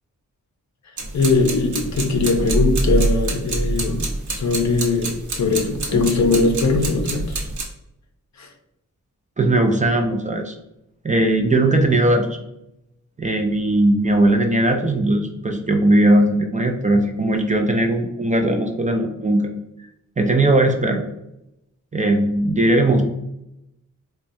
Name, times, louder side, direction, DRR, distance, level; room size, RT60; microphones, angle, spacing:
sound 1, 1.0-7.6, right 2 dB, 65° right, 0.8 m, -25 dB
voice 1, 1.1-7.4 8.4-8.5, left 3 dB, 60° left, 4 dB, 0.6 m, -20 dB
voice 2, 9.4-10.5 11.0-12.4 13.2-19.5 20.2-21.1 21.9-23.0, right 1 dB, 25° right, 4 dB, 0.3 m, -18 dB
4.3 x 2.2 x 2.6 m, 0.83 s
wide cardioid pair, 120°, 32 cm